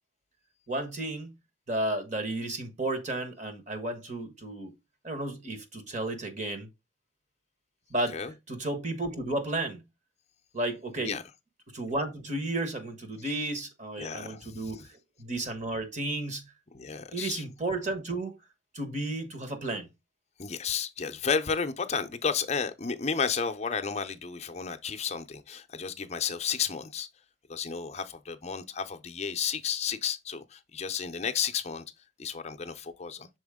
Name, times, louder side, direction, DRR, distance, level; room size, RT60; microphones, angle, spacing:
voice 1, 0.7-1.3 1.7-4.7 5.0-6.7 7.9-8.2 8.5-9.8 10.5-11.2 11.7-14.8 15.2-16.5 17.1-18.3 18.7-19.9, right 2 dB, 40° right, 1.2 m, -33 dB
voice 2, 14.0-14.9 16.7-17.4 20.4-27.1 27.5-31.8 32.2-33.3, left 6 dB, 35° left, 0.6 m, -32 dB
6.2 x 4.4 x 3.6 m
head